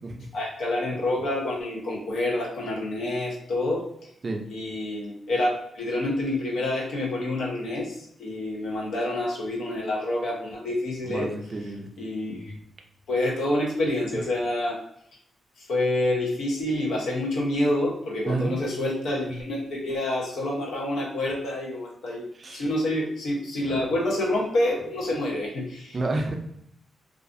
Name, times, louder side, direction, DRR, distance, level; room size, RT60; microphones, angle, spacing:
voice 1, 0.3-3.9 4.5-11.3 12.0-12.5 13.1-14.8 15.6-26.0, left 1 dB, 80° left, -2 dB, 0.8 m, -27 dB
voice 2, 11.0-11.9 18.3-18.5 22.3-22.6 23.6-23.9 25.9-26.4, right 2 dB, 35° right, 3 dB, 0.4 m, -30 dB
2.5 x 2.4 x 2.5 m, 0.72 s
cardioid pair, 110°, 0 cm